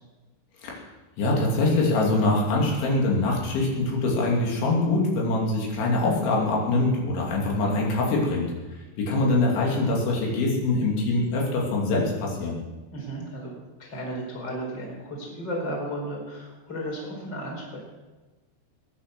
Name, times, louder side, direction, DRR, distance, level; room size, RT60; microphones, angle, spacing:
voice 1, 1.2-8.5 9.0-12.6, left 2 dB, 75° left, -3 dB, 5.2 m, -24 dB
voice 2, 12.9-13.5 13.8-17.8, equal, 25° left, -1 dB, 4.9 m, -34 dB
22.0 x 10.0 x 6.2 m, 1.2 s
omnidirectional pair, 5.4 m